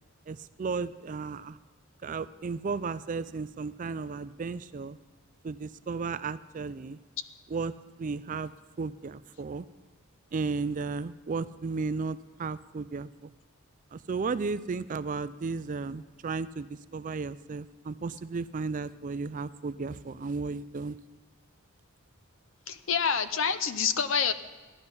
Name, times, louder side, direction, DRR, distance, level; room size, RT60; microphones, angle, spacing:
voice 1, 0.3-1.6 2.0-5.0 5.4-7.0 7.5-7.7 8.0-8.5 8.8-9.7 10.3-13.3 13.9-21.0, right 4 dB, 35° right, 15 dB, 0.4 m, -34 dB
voice 2, 22.7-24.3, left 6 dB, 65° left, 12 dB, 0.7 m, -27 dB
15.5 x 11.0 x 5.7 m, 1.3 s
head